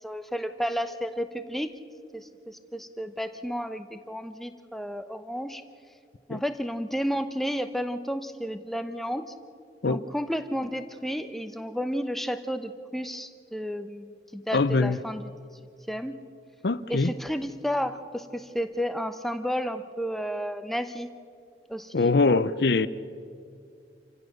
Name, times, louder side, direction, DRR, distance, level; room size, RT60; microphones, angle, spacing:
voice 1, 0.0-1.8 2.1-5.6 6.3-9.3 9.8-15.3 15.9-16.2 16.9-21.1 21.7-22.4, equal, ahead, 0.8 m, -32 dB
voice 2, 14.5-15.0 16.6-17.1 21.9-22.9, left 3 dB, 65° left, 0.6 m, -23 dB
28.0 x 15.5 x 6.6 m
head